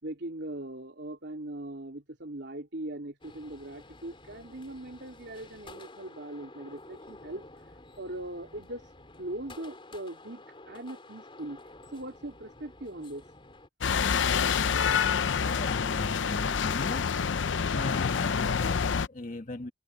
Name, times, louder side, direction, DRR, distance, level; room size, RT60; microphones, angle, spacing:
voice 1, 0.0-7.4 8.0-8.9 9.2-11.6 11.9-13.2, right 1 dB, 65° right, 3.5 m, -40 dB
sound 1, 3.2-13.7, left 2 dB, 30° left, 4.2 m, -51 dB
sound 2, 13.8-19.1, left 6 dB, 90° left, 0.6 m, -27 dB
voice 2, 15.4-17.1 17.7-19.7, left 2 dB, 45° left, 1.6 m, -38 dB
head